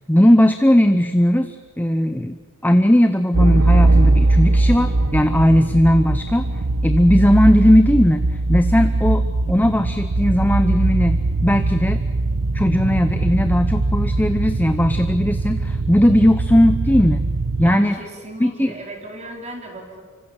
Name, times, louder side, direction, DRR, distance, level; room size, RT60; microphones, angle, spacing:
voice 1, 0.1-6.5 6.8-12.0 12.5-17.2 17.6-18.0 18.4-18.7, equal, 10° left, 9 dB, 0.7 m, -17 dB
sound 1, 3.3-17.8, right 2 dB, 80° right, 1.0 m, -20 dB
voice 2, 17.6-20.0, right 2 dB, 30° right, 1 dB, 4.3 m, -35 dB
26.5 x 25.0 x 7.4 m, 1.5 s
head